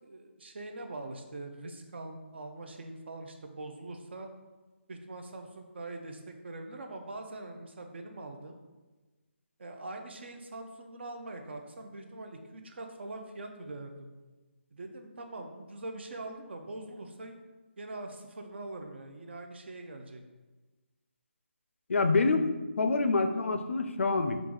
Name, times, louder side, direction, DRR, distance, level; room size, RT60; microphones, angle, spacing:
voice 1, 0.0-4.3 4.9-8.5 9.6-14.1 14.7-17.4 17.8-20.2, right 2 dB, 55° right, 4 dB, 0.6 m, -43 dB
voice 2, 21.9-22.5 22.8-24.4, left 3 dB, 70° left, 8 dB, 0.4 m, -26 dB
4.5 x 2.5 x 3.8 m, 1.2 s
figure-of-eight pair, 165°, 7 cm